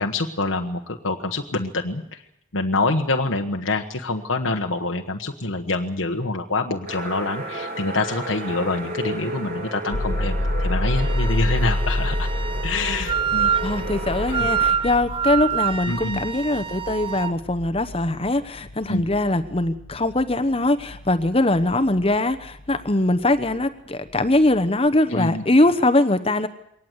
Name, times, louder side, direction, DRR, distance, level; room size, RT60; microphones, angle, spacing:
voice 1, 0.0-2.2 2.5-12.3 12.6-13.5 14.3-14.5 15.9-16.2 18.9-19.0 25.1-25.4, left 3 dB, 85° left, 3 dB, 1.4 m, -26 dB
sound 1, 6.9-14.7, right 2 dB, 45° right, 4.1 m, -33 dB
sound 2, 9.9-23.7 24.1-25.0, left 1 dB, 55° left, 1.1 m, -30 dB
Wind instrument woodwind instrument, 11.0-17.4, right 8 dB, 25° right, 0.9 m, -27 dB
voice 2, 13.4-26.5, left 2 dB, 30° left, 10 dB, 1.0 m, -21 dB
23.0 x 18.5 x 8.2 m, 0.77 s
head